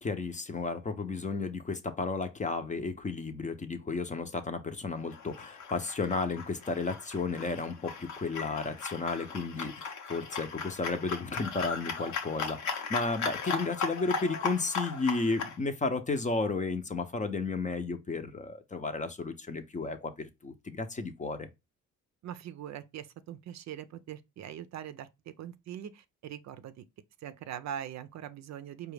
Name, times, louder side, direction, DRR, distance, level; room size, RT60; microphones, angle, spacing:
voice 1, 0.0-20.1 20.4-21.5, left 3 dB, 25° left, 0.6 m, -33 dB
sound 1, 5.1-15.6, left 5 dB, 70° left, 0.9 m, -37 dB
voice 2, 22.2-26.8 27.2-28.9, right 10 dB, 65° right, 0.5 m, -42 dB
4.7 x 2.3 x 3.3 m
cardioid pair, 90°, 30 cm